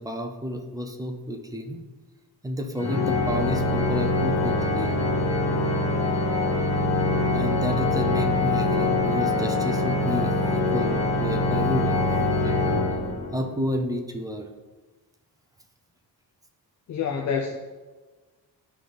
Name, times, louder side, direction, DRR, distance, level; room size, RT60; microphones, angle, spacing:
voice 1, 0.0-1.8 2.4-4.9 7.3-12.8 13.3-14.5, equal, 10° right, 4 dB, 0.4 m, -31 dB
Organ, 2.8-13.6, left 2 dB, 85° left, 1.8 m, -24 dB
voice 2, 16.9-17.6, left 6 dB, 45° left, 1 dB, 0.6 m, -27 dB
11.5 x 4.0 x 3.3 m, 1.3 s
wide cardioid pair, 170°, 41 cm